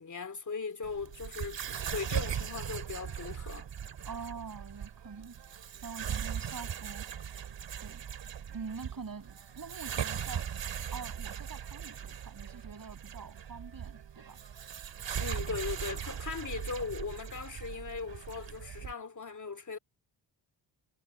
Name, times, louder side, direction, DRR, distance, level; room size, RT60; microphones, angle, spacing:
voice 1, 0.0-1.6 1.9-3.7 15.2-19.8, left 5 dB, 40° left, 2.6 m, -39 dB
sound 1, 0.8-18.9, right 8 dB, 60° right, 3.0 m, -39 dB
voice 2, 4.0-5.3 5.8-7.1 7.8-8.0 8.5-10.5 10.9-14.4, right 5 dB, 45° right, 7.6 m, -45 dB
supercardioid pair, 55°, 48 cm